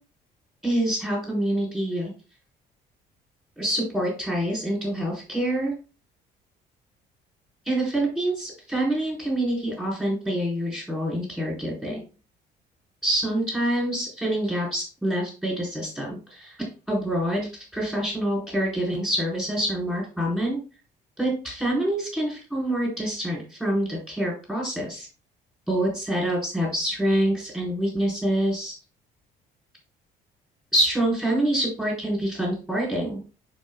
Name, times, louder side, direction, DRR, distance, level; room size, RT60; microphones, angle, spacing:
voice 1, 0.6-2.1 3.6-5.7 7.6-12.0 13.0-16.6 16.9-20.6 21.2-25.1 25.7-28.7 30.7-33.2, right 1 dB, 5° left, -4 dB, 4.4 m, -26 dB
11.5 x 4.8 x 2.4 m, 0.34 s
cardioid pair, 110°, 17 cm